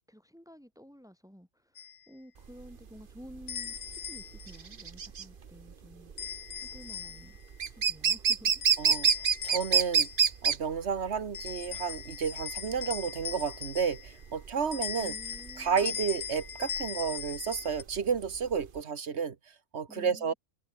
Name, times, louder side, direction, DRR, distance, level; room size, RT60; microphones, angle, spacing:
voice 1, 0.1-6.3 6.6-7.4 7.7-8.6 15.0-16.0 19.9-20.4, equal, 5° right, 6.1 m, -52 dB
sound 1, 1.8-2.0 3.5-4.6 6.2-7.4 8.5-10.3 11.3-14.2 14.7-17.8, left 7 dB, 80° left, 1.6 m, -39 dB
sound 2, 2.4-18.8, right 6 dB, 50° right, 1.2 m, -29 dB
voice 2, 8.8-9.1 9.4-10.1 10.4-15.1 15.6-19.3 19.7-20.3, right 6 dB, 65° right, 1.6 m, -31 dB
omnidirectional pair, 1.2 m